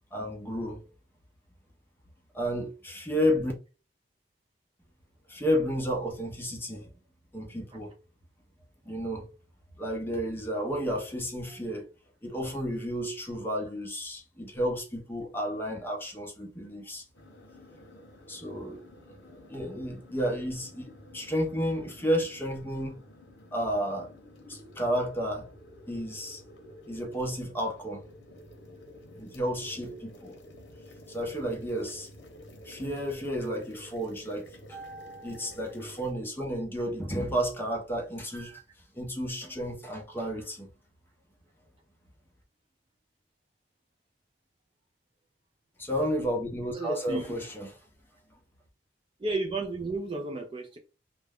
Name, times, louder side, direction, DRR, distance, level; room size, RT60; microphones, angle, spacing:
voice 1, 0.1-0.8 2.3-3.5 5.3-6.9 7.3-7.9 8.9-9.3 9.8-11.9 12.2-17.0 18.3-23.0 23.5-24.1 24.5-25.5 25.9-26.4 26.9-28.0 29.1-30.3 31.1-32.1 32.6-38.6 38.9-40.7 45.8-47.7, equal, 10° left, 0.6 m, -32 dB
sound 1, 17.1-36.1, left 1 dB, 85° left, 0.8 m, -51 dB
voice 2, 46.7-47.3 49.2-50.8, right 2 dB, 30° right, 0.4 m, -32 dB
2.3 x 2.1 x 3.4 m
head